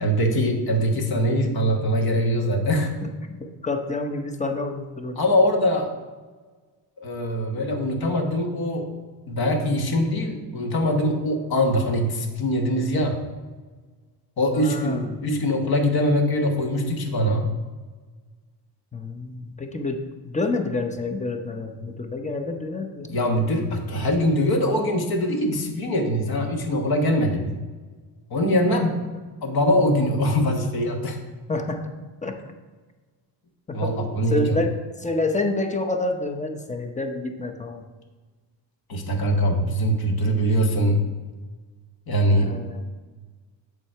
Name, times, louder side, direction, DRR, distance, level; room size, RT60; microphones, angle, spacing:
voice 1, 0.0-2.9 5.2-5.9 7.0-8.9 9.3-13.2 14.4-17.5 23.1-27.6 28.3-29.0 29.4-31.2 33.7-34.6 38.9-41.0 42.1-42.6, equal, 50° left, 3 dB, 1.4 m, -22 dB
voice 2, 3.0-5.2 14.5-15.3 18.9-23.2 31.5-31.9 32.2-32.3 33.7-37.9 42.3-42.8, left 2 dB, 15° left, 5 dB, 0.7 m, -28 dB
7.3 x 4.9 x 4.5 m, 1.4 s
cardioid pair, 100°, 48 cm